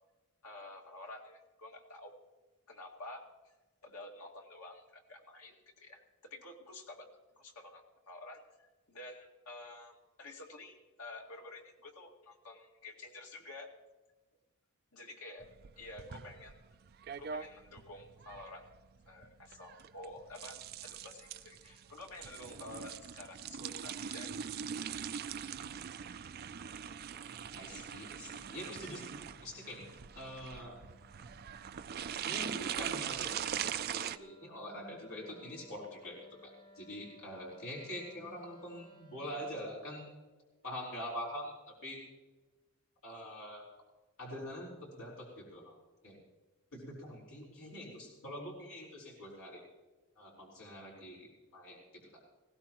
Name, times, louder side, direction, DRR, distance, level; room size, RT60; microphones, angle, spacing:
voice 1, 0.4-2.1 2.7-3.5 3.8-6.0 6.3-7.1 7.4-13.7 14.9-15.5 15.8-16.6 17.1-18.7 19.0-24.3 24.6-24.7, left 2 dB, 90° left, 1 dB, 2.2 m, -50 dB
sound 1, 15.4-34.2, right 8 dB, 45° right, 0.4 m, -42 dB
Wind instrument woodwind instrument, 26.8-39.7, equal, 25° left, 5.7 m, -63 dB
voice 2, 27.5-29.1 29.4-29.9 30.1-30.8 32.3-40.1 40.6-41.5 41.8-42.0 43.0-43.7 44.2-45.8 46.0-46.2 46.7-49.6 50.2-52.1, equal, 70° left, -3 dB, 4.4 m, -45 dB
19.5 x 17.0 x 3.0 m, 1.2 s
head